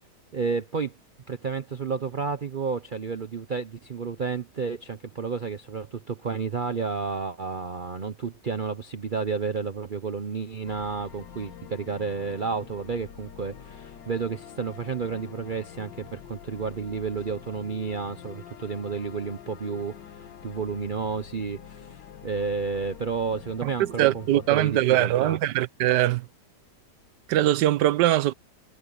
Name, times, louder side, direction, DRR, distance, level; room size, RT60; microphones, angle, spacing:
voice 1, 0.3-0.9 1.3-24.2 24.5-25.4, right 5 dB, 45° right, 0.6 m, -31 dB
sound 1, 10.6-25.1, left 9 dB, 90° left, 1.8 m, -46 dB
voice 2, 23.6-26.3 27.3-28.3, right 14 dB, 75° right, 1.3 m, -22 dB
omnidirectional pair, 1.9 m